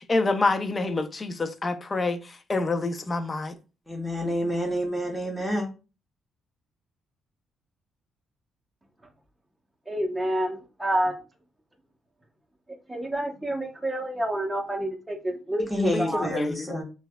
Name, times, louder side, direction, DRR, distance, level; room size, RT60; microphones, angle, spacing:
voice 1, 0.0-3.5 15.9-16.7, left 3 dB, 30° left, 0.5 m, -27 dB
voice 2, 3.9-5.7 15.7-16.8, equal, 5° left, 1.3 m, -28 dB
voice 3, 9.9-11.2 12.9-16.3, right 1 dB, 10° right, 0.9 m, -28 dB
4.4 x 2.3 x 2.2 m
cardioid pair, 90°, 0 cm